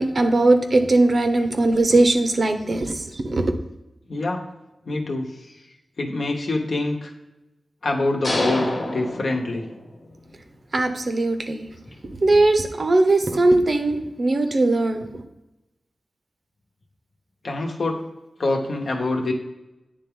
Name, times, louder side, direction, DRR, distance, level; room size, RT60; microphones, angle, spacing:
voice 1, 0.0-3.6 10.7-11.7 12.2-15.2, right 2 dB, 50° right, 7 dB, 0.7 m, -19 dB
voice 2, 4.1-4.4 4.9-5.3 6.0-7.1 7.8-9.6 17.4-18.0 18.4-19.3, left 2 dB, 65° left, 2 dB, 1.0 m, -25 dB
sound 1, 8.2-10.1, left 1 dB, 45° left, 1.2 m, -27 dB
9.3 x 3.5 x 3.6 m, 0.98 s
wide cardioid pair, 95°, 0 cm